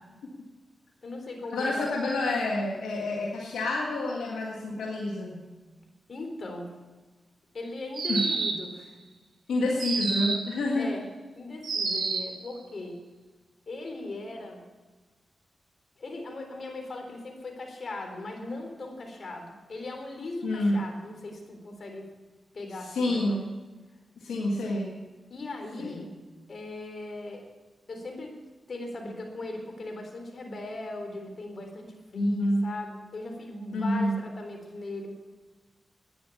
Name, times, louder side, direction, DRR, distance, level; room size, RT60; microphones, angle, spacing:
voice 1, 1.0-1.8 6.1-6.8 7.5-9.0 10.7-11.1 11.4-13.0 13.7-14.7 16.0-22.1 22.5-23.5 25.3-26.1 26.5-27.5 27.9-28.3 28.7-35.1, left 2 dB, 60° left, 3 dB, 3.7 m, -39 dB
voice 2, 1.5-5.4 8.1-8.3 9.5-10.9 20.4-20.8 22.9-23.5 24.2-25.0 25.8-26.0 32.1-32.7 33.7-34.2, left 1 dB, 90° left, -2 dB, 1.7 m, -28 dB
sound 1, 7.9-8.7 9.8-10.5 11.6-12.4, right 4 dB, 75° right, 2.0 m, -29 dB
12.5 x 9.9 x 8.4 m, 1.2 s
supercardioid pair, 40°, 0 cm